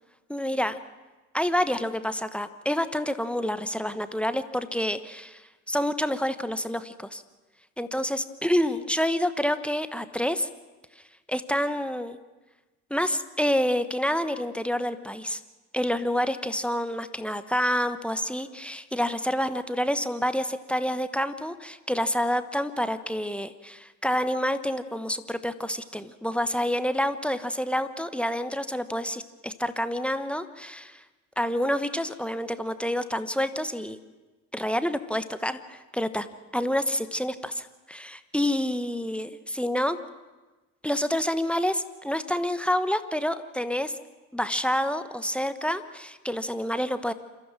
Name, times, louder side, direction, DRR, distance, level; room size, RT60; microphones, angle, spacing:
voice 1, 0.3-0.8 1.3-7.2 7.8-10.5 11.3-12.2 12.9-15.4 15.7-31.0 31.4-34.0 34.5-36.3 36.5-40.0 40.8-44.0 44.3-47.1, equal, 5° left, 11 dB, 1.1 m, -28 dB
29.0 x 15.0 x 6.2 m, 1.2 s
figure-of-eight pair, 55°, 40 cm